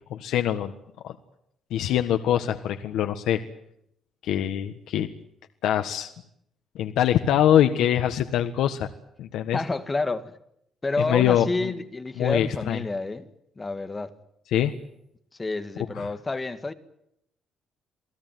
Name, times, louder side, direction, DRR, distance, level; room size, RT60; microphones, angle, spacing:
voice 1, 0.1-0.7 1.0-1.1 1.7-3.4 4.2-5.1 5.6-6.1 6.7-8.9 9.2-9.6 11.1-11.7 12.2-12.8 14.5-14.7 15.9-16.1, left 11 dB, 80° left, 1.5 m, -23 dB
voice 2, 9.5-10.3 10.8-13.3 13.6-14.1 15.4-16.7, left 3 dB, 15° left, 1.8 m, -29 dB
28.5 x 18.5 x 9.4 m
cardioid pair, 155°, 0 cm